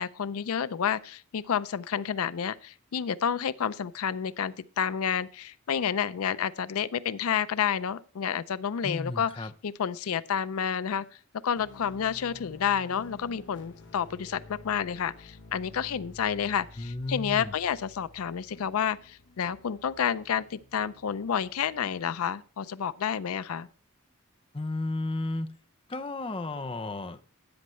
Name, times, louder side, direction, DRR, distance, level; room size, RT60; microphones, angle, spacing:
voice 1, 0.0-9.3 9.6-11.0 11.4-23.7, left 8 dB, 80° left, 0.4 m, -30 dB
voice 2, 8.8-9.5 16.8-17.5 24.5-25.5 25.9-27.2, left 2 dB, 25° left, 0.6 m, -33 dB
sound 1, 11.5-21.8, left 2 dB, 55° left, 1.1 m, -51 dB
13.0 x 9.3 x 3.1 m
head